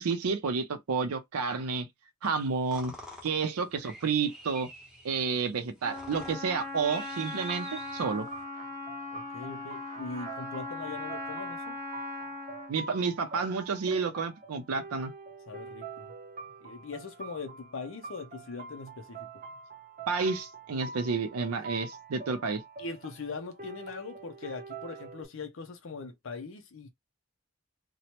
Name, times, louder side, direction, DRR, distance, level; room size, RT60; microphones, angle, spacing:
voice 1, 0.0-1.9 2.2-2.9 3.2-4.7 5.0-8.3 12.7-15.1 20.1-22.6, right 5 dB, 90° right, 0.5 m, -30 dB
sound 1, 2.2-8.4, equal, 5° right, 0.9 m, -48 dB
Trumpet, 5.8-12.8, left 2 dB, 15° left, 1.4 m, -39 dB
sound 2, 7.5-25.2, right 4 dB, 40° right, 0.7 m, -46 dB
voice 2, 9.1-11.8 15.5-16.1 16.6-19.4 22.8-26.9, left 4 dB, 60° left, 0.5 m, -41 dB
3.0 x 2.1 x 2.9 m
head